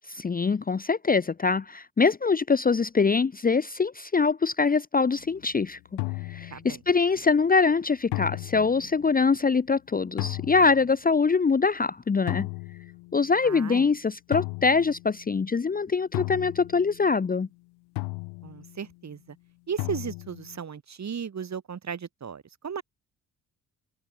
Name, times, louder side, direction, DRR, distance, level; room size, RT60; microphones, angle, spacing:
voice 1, 0.2-6.0 6.3-12.5 13.1-17.5, left 4 dB, 20° left, 0.9 m, -24 dB
sound 1, 5.2-5.5 6.0-6.9 8.1-9.1 10.2-10.9 12.3-13.5 14.3-15.4 16.1-17.3 18.0-18.9 19.8-20.6, left 28 dB, 70° left, 1.4 m, -35 dB
voice 2, 6.5-6.8 13.4-13.9 18.4-19.4 19.7-22.8, right 7 dB, 40° right, 3.2 m, -35 dB
figure-of-eight pair, 45°, 42 cm